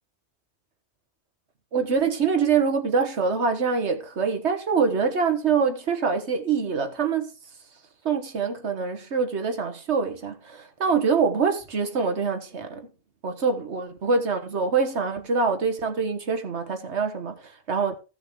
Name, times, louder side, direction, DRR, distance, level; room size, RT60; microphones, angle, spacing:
voice 1, 1.7-7.3 8.0-12.9 13.2-17.4 17.7-17.9, right 5 dB, 85° right, 1.6 m, -25 dB
15.5 x 6.4 x 3.7 m
omnidirectional pair, 1.1 m